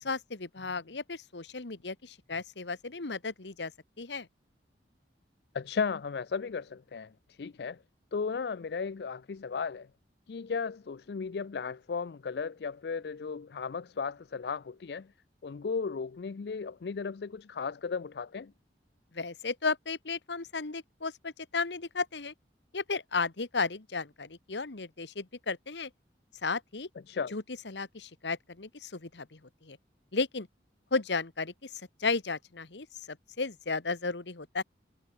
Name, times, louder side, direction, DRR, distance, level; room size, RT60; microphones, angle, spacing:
voice 1, 0.0-3.7 4.0-4.3 19.1-22.3 22.7-25.9 26.4-26.9 27.3-29.8 30.1-30.5 30.9-31.7 32.0-34.6, left 4 dB, 80° left, 1.4 m, -34 dB
voice 2, 5.5-7.8 8.1-9.9 10.3-15.1 15.4-18.5 27.1-27.3, left 5 dB, 65° left, 0.4 m, -35 dB
head